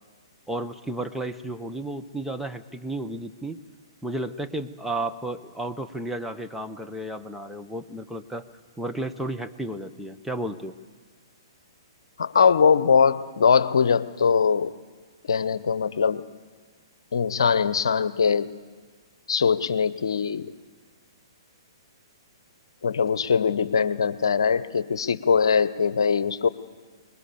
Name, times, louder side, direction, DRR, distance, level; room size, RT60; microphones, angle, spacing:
voice 1, 0.5-3.6 4.0-8.4 8.8-10.8, right 1 dB, ahead, 5 dB, 0.9 m, -33 dB
voice 2, 12.2-14.7 15.3-16.2 17.1-18.5 19.3-20.5 22.8-26.5, left 6 dB, 65° left, 16 dB, 0.9 m, -21 dB
25.0 x 21.0 x 7.1 m, 1.5 s
figure-of-eight pair, 120°, 3 cm